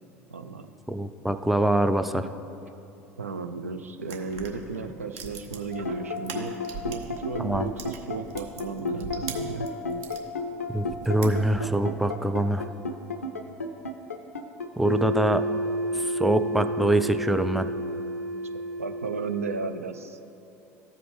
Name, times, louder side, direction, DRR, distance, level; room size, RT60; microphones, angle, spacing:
voice 1, 0.3-0.7 3.2-6.6 6.8-9.7 18.8-20.2, right 4 dB, 85° right, 7 dB, 0.4 m, -34 dB
voice 2, 0.9-2.3 7.4-7.7 10.7-12.6 14.8-15.4 16.0-17.7, right 1 dB, ahead, 9 dB, 0.3 m, -24 dB
sound 1, 4.0-7.2 7.5-10.2 10.7-11.8, right 6 dB, 60° right, 0.8 m, -41 dB
sound 2, 5.7-19.7, left 1 dB, 90° left, 0.4 m, -31 dB
14.0 x 4.9 x 3.1 m, 2.8 s
figure-of-eight pair, 70°, 8 cm